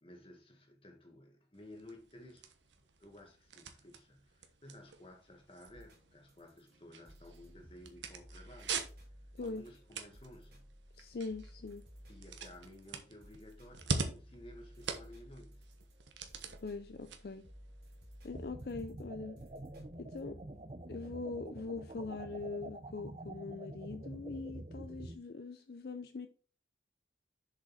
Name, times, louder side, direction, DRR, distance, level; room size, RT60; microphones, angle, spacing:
voice 1, 0.0-2.5 3.0-8.8 9.4-10.7 12.1-15.6, left 1 dB, 30° left, 1.6 m, -55 dB
sound 1, 1.5-18.5, right 4 dB, 85° right, 1.1 m, -45 dB
sound 2, 5.7-22.7 23.6-23.7, equal, 60° right, 3.2 m, -57 dB
voice 2, 9.3-9.7 11.0-11.8 16.6-17.4 18.2-19.4 20.0-20.4 20.9-26.3, left 3 dB, 55° left, 0.5 m, -42 dB
sound 3, 18.3-25.1, right 1 dB, 35° right, 0.6 m, -47 dB
7.1 x 5.3 x 4.1 m
head